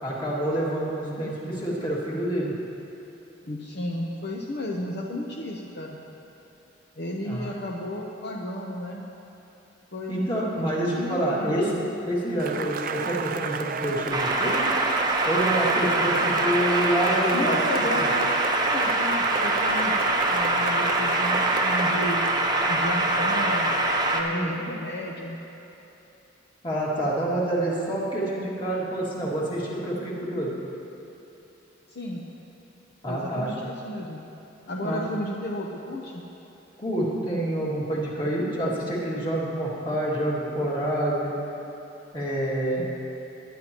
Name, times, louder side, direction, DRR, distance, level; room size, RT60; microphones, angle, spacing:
voice 1, 0.0-2.5 7.2-7.5 10.1-14.7 15.3-17.6 17.9-18.1 24.3-24.7 26.6-30.5 33.0-33.5 34.8-35.0 36.8-41.3 42.1-42.9, right 1 dB, 25° left, -6 dB, 2.2 m, -27 dB
voice 2, 3.5-6.0 7.0-9.0 9.9-11.8 17.3-18.4 18.7-22.2 22.7-23.7 24.1-25.4 31.9-32.2 33.0-34.2 34.7-36.2 42.8-42.9, left 1 dB, 55° left, -2 dB, 0.8 m, -33 dB
Cheering / Applause, 12.4-22.4, right 5 dB, 45° right, 0.4 m, -32 dB
sound 1, 14.1-24.2, right 2 dB, 20° right, 0.8 m, -24 dB
21.0 x 10.0 x 3.0 m, 3.0 s
head